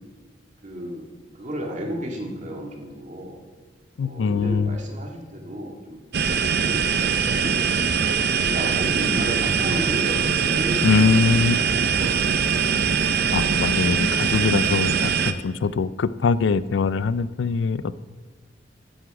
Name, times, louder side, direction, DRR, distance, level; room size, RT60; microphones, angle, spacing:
voice 1, 0.6-3.4 4.0-6.0 6.3-7.7 8.2-12.9, equal, 45° right, 0 dB, 2.0 m, -34 dB
voice 2, 4.0-4.8 10.8-11.6 13.3-18.0, left 4 dB, 80° left, 16 dB, 0.4 m, -22 dB
sound 1, 6.1-15.3, right 6 dB, 60° right, 0.6 m, -22 dB
14.0 x 8.0 x 4.8 m, 1.4 s
head